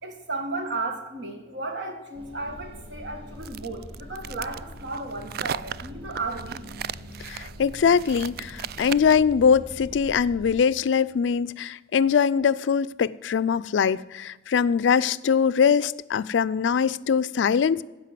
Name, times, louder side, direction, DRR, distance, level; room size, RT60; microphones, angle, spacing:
voice 1, 0.0-6.7, right 3 dB, 70° right, 1.8 m, -34 dB
sound 1, 2.1-10.6, equal, 30° right, 2.7 m, -43 dB
sound 2, 3.4-9.3, right 9 dB, 55° right, 0.3 m, -36 dB
voice 2, 7.2-17.8, left 6 dB, 80° left, 0.4 m, -22 dB
15.0 x 5.3 x 7.5 m
head